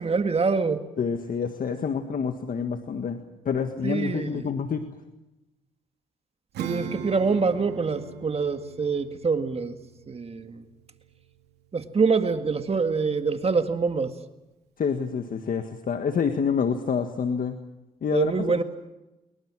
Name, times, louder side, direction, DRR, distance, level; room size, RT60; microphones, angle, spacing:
voice 1, 0.0-0.8 3.8-4.4 6.6-9.8 10.1-10.6 11.7-14.1 18.1-18.6, right 4 dB, 35° right, 8 dB, 1.9 m, -25 dB
voice 2, 1.0-3.2 3.4-5.0 14.8-17.6 18.0-18.6, left 6 dB, 55° left, 6 dB, 1.8 m, -27 dB
Acoustic guitar / Strum, 6.5-12.6, right 7 dB, 85° right, 3.1 m, -40 dB
26.5 x 23.0 x 6.3 m, 1.0 s
cardioid pair, 70°, 17 cm